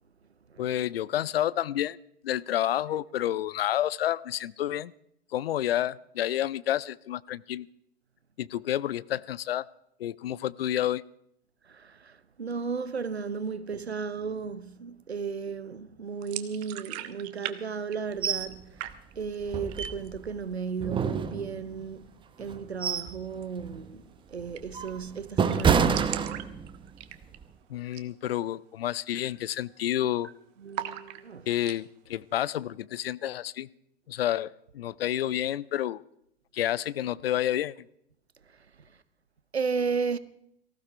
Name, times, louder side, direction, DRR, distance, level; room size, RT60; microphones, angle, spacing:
voice 1, 0.6-2.0 2.2-4.9 5.3-7.7 8.4-9.7 10.0-11.0 27.7-30.3 31.5-33.7 34.1-36.0 36.5-37.7, left 12 dB, 65° left, 0.6 m, -29 dB
voice 2, 11.7-18.9 19.2-22.1 22.4-24.0 24.3-26.3 30.6-31.5 39.5-40.2, right 5 dB, 85° right, 0.9 m, -34 dB
sound 1, 16.2-17.6 17.8-18.5 18.8-19.4 19.7-20.2 20.6-20.7 21.0-21.6 23.3-23.5 23.8-23.9 24.1-24.2 24.5-24.9 25.2-25.3 25.4-27.5 27.8-28.1 28.5-28.6 29.1-29.4 29.6-30.2 30.7-31.8, right 15 dB, 40° right, 1.1 m, -39 dB
sound 2, 18.2-18.5 18.9-19.0 19.5-20.3 20.8-21.8 22.4-23.2 23.6-23.8 24.4-26.8 27.2-27.4, right 6 dB, 15° right, 0.9 m, -27 dB
18.5 x 15.0 x 4.6 m
figure-of-eight pair, 95°, 31 cm